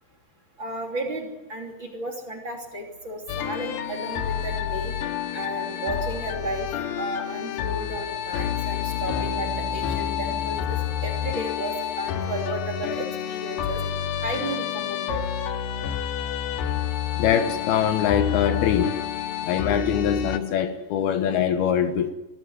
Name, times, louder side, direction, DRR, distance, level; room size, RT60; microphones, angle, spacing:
voice 1, 0.6-5.0 5.3-6.7 7.0-10.8 11.0-13.8 14.2-15.2, right 2 dB, 30° right, 1 dB, 3.4 m, -33 dB
sound 1, 3.3-20.4, left 9 dB, 90° left, 3.4 m, -29 dB
voice 2, 17.2-19.0 19.5-22.1, left 9 dB, 75° left, 9 dB, 3.0 m, -23 dB
22.0 x 16.0 x 9.6 m, 1.0 s
omnidirectional pair, 4.7 m